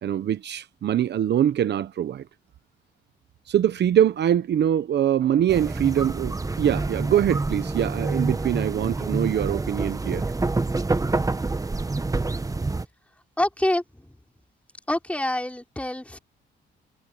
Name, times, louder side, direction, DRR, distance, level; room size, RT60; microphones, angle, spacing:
voice 1, 0.0-2.3 3.5-10.2, right 10 dB, 60° right, 1.0 m, -23 dB
sound 1, 5.5-12.9, right 3 dB, 15° right, 1.1 m, -27 dB
voice 2, 13.4-14.1 14.9-16.2, left 1 dB, 5° left, 3.6 m, -26 dB
cardioid pair, 90°, 20 cm